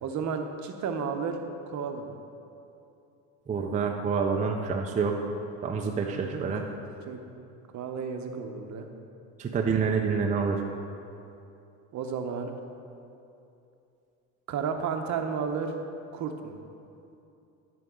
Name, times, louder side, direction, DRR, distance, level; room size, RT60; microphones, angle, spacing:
voice 1, 0.0-2.1 6.1-6.6 7.1-7.2 7.7-8.9 11.9-12.5 14.5-15.8 16.1-16.6, right 6 dB, 45° right, 5 dB, 0.8 m, -33 dB
voice 2, 3.5-5.3 5.6-6.6 9.4-10.6, right 5 dB, 20° right, 1 dB, 0.5 m, -27 dB
12.5 x 5.2 x 3.7 m, 2.7 s
supercardioid pair, 105°, 40 cm